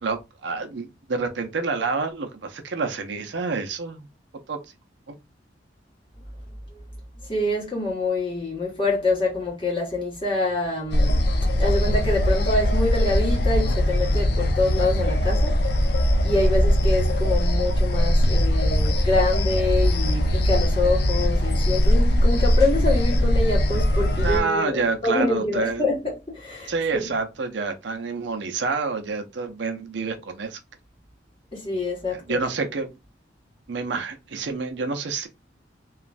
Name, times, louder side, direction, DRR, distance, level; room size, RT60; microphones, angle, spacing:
voice 1, 0.0-4.1 4.5-4.6 5.1-5.2 24.2-25.8 26.7-30.6 32.1-33.0 33.7-35.3, right 4 dB, 75° right, 0.6 m, -28 dB
voice 2, 7.3-11.2 11.5-15.9 16.2-27.1 31.5-32.4, left 2 dB, 30° left, 1.6 m, -26 dB
sound 1, 10.9-24.4, equal, 60° left, 0.5 m, -21 dB
3.0 x 2.3 x 2.5 m
head